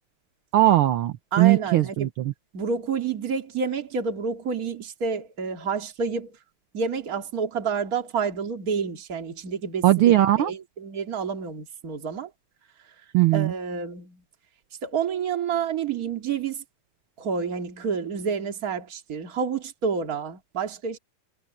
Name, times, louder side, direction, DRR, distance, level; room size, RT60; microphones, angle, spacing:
voice 1, 0.5-2.3 9.8-10.5 13.1-13.5, right 14 dB, 70° right, 1.3 m, -19 dB
voice 2, 1.3-2.1 2.5-6.4 6.7-12.3 13.3-14.2 14.8-16.6 17.2-21.0, right 6 dB, 30° right, 2.4 m, -29 dB
omnidirectional pair, 3.4 m